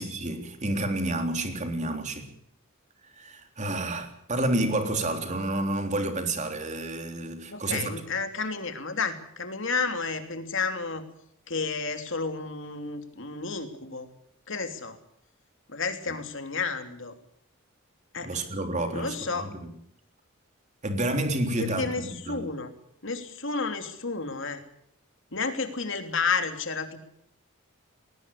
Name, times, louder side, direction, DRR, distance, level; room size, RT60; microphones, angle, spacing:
voice 1, 0.0-2.3 3.2-8.0 18.2-19.5 20.8-22.4, right 1 dB, 35° right, 3.6 m, -29 dB
voice 2, 7.5-11.0 11.5-14.1 14.5-15.0 15.7-17.1 18.1-18.3 18.9-19.5 21.6-22.7 23.0-24.6 25.3-27.0, left 4 dB, 60° left, 3.2 m, -31 dB
20.5 x 19.0 x 8.6 m
head